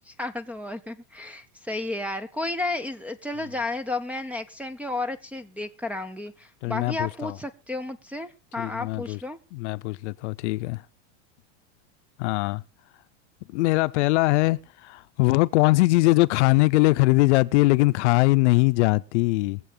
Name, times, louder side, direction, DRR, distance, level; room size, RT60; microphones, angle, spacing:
voice 1, 0.1-9.4, left 2 dB, 5° right, 0.5 m, -32 dB
voice 2, 6.6-7.4 8.6-9.2 9.5-10.8 12.2-12.6 13.5-19.6, left 21 dB, 70° left, 0.7 m, -21 dB
21.5 x 7.7 x 3.8 m
supercardioid pair, 150°, 36 cm